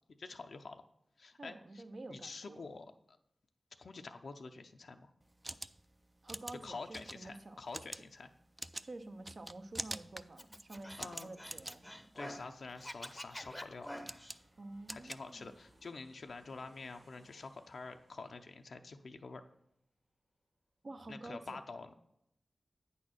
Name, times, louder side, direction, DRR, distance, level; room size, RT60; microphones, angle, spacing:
voice 1, 0.2-0.8 1.2-1.8 2.1-3.2 3.8-5.1 6.6-8.3 11.0-11.3 12.2-13.9 14.9-19.4 21.1-22.0, left 3 dB, 75° left, 6 dB, 0.5 m, -47 dB
voice 2, 1.4-2.6 6.2-7.6 8.8-12.1 14.6-15.5 20.8-21.6, right 2 dB, 65° right, 7 dB, 0.7 m, -49 dB
sound 1, 5.2-15.9, right 1 dB, 25° right, 0.3 m, -48 dB
Scratching (performance technique), 10.4-12.5 12.8-14.4, equal, 10° left, 0.6 m, -47 dB
Aircraft, 11.2-20.1 20.4-20.5, right 1 dB, 90° right, 2.4 m, -70 dB
8.5 x 4.2 x 6.2 m, 0.79 s
cardioid pair, 40°, 0 cm